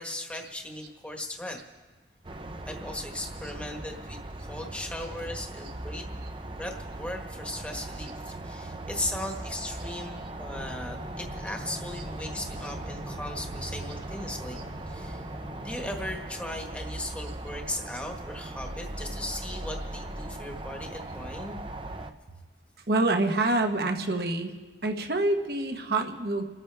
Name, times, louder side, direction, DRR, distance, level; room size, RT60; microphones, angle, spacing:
voice 1, 0.0-1.6 2.6-6.1 6.6-15.3 15.6-21.6, left 1 dB, 5° left, 2 dB, 1.4 m, -37 dB
sound 1, 2.2-22.1, right 1 dB, 30° right, 0.7 m, -39 dB
sound 2, 10.5-16.2, equal, 35° left, 1.6 m, -43 dB
voice 2, 22.9-24.5 24.8-26.4, right 2 dB, 60° right, 5 dB, 1.2 m, -26 dB
29.5 x 13.5 x 3.5 m, 1.3 s
head